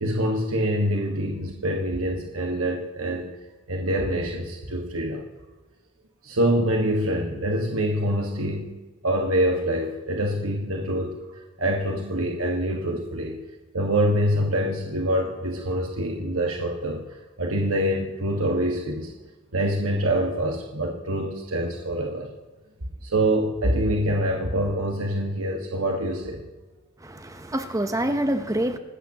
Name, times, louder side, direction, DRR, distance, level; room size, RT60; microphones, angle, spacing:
voice 1, 0.0-3.3 3.7-5.2 6.2-8.7 9.0-13.4 13.7-19.1 19.5-22.3 23.0-26.4, right 1 dB, 75° right, 1 dB, 1.6 m, -25 dB
voice 2, 27.0-28.8, right 1 dB, 15° right, 8 dB, 0.8 m, -26 dB
25.5 x 12.5 x 3.0 m, 1.3 s
head